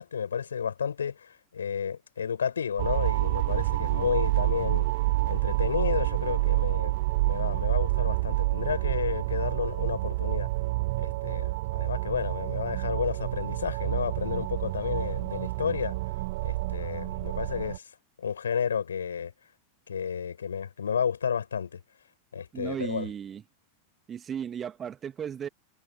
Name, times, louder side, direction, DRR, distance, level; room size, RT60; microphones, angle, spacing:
voice 1, 0.0-4.9 5.2-10.5 11.0-16.0 16.4-17.9 18.2-19.3 19.9-21.8 22.3-23.1, left 7 dB, 70° left, 6.2 m, -31 dB
sound 1, 2.8-17.8, right 21 dB, 50° right, 0.5 m, -28 dB
voice 2, 22.5-23.4 24.1-25.5, right 8 dB, 25° right, 1.6 m, -35 dB
figure-of-eight pair, 90°, 0 cm